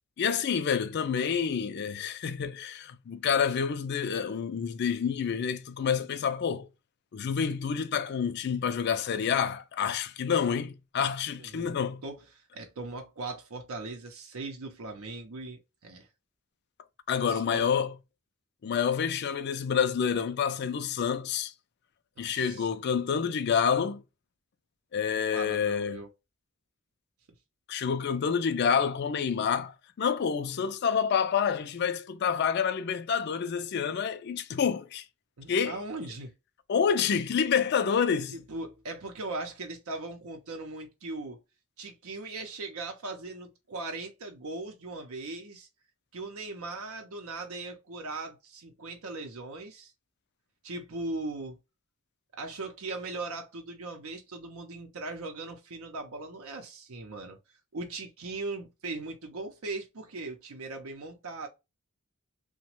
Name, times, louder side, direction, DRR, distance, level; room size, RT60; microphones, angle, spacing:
voice 1, 0.2-6.7 7.1-12.0 17.1-17.9 18.6-21.5 22.2-24.0 24.9-26.0 27.7-35.0 35.5-35.8 36.7-38.4, left 7 dB, 50° left, 0.3 m, -28 dB
voice 2, 11.4-11.8 12.0-16.1 17.3-17.6 22.2-22.7 25.3-26.1 35.4-36.3 38.3-41.4 41.8-45.7 46.1-49.9 50.6-51.6 52.4-57.4 57.7-61.5, right 3 dB, 85° right, 0.6 m, -39 dB
2.9 x 2.1 x 2.9 m
head